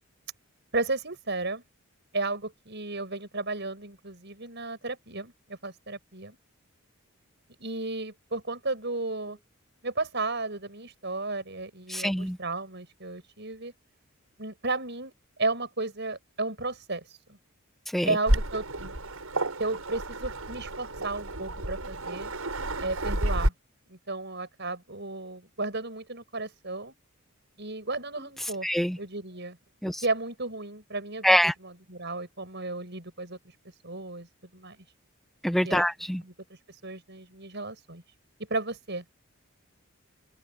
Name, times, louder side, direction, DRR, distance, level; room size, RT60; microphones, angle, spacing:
voice 1, 0.7-1.6 2.1-6.4 7.6-9.4 9.8-13.7 14.4-15.1 15.4-17.0 17.3-17.4 18.1-18.7 19.6-22.3 22.8-23.5 23.9-26.9 27.6-28.7 29.0-29.6 30.0-33.4 33.8-34.3 34.5-34.8 35.6-35.9 36.2-36.3 36.8-38.0 38.5-39.0, right 3 dB, 55° right, 7.2 m, -33 dB
voice 2, 11.9-12.4 17.9-18.1 28.6-29.0 29.8-30.0 31.2-31.5 35.4-36.2, equal, ahead, 1.0 m, -24 dB
Waves surf, 18.3-23.5, right 1 dB, 85° right, 6.9 m, -30 dB
open air
head